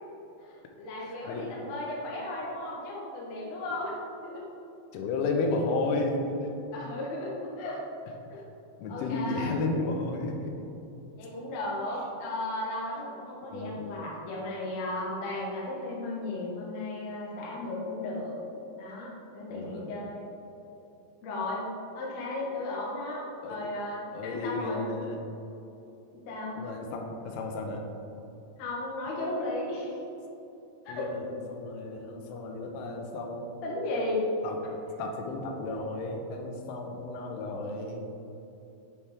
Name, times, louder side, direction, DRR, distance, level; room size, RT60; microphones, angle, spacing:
voice 1, 0.4-3.9 4.2-4.4 6.7-7.8 8.3-8.4 8.9-9.5 11.2-18.4 18.8-19.1 19.3-20.3 21.2-21.6 21.9-24.9 26.1-26.6 28.6-30.0 30.8-31.1 33.6-34.3, left 2 dB, 70° left, -5 dB, 1.6 m, -35 dB
voice 2, 1.1-1.5 4.9-6.2 8.8-10.5 13.5-13.8 19.5-19.9 23.4-23.6 24.1-25.2 26.6-27.9 30.9-33.5 34.4-34.6 35.0-38.0, left 3 dB, 85° left, 2 dB, 3.2 m, -33 dB
9.7 x 4.4 x 3.5 m, 2.9 s
omnidirectional pair, 5.5 m